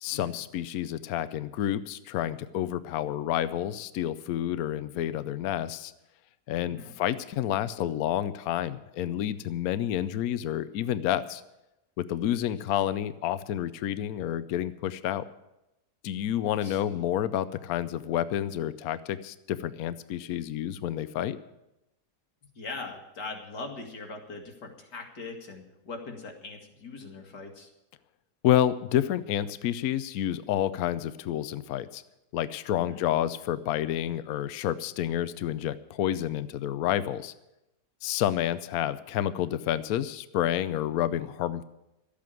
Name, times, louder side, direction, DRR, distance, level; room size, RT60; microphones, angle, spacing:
voice 1, 0.0-5.9 6.5-11.4 12.0-15.3 16.0-21.4 28.4-32.0 32.3-37.3 38.0-41.6, left 11 dB, 70° left, 14 dB, 1.1 m, -29 dB
voice 2, 6.6-6.9 12.4-12.5 16.6-17.1 22.6-27.7 32.8-33.0, left 3 dB, 85° left, 2 dB, 2.6 m, -41 dB
13.0 x 8.5 x 9.0 m, 0.90 s
omnidirectional pair, 1.7 m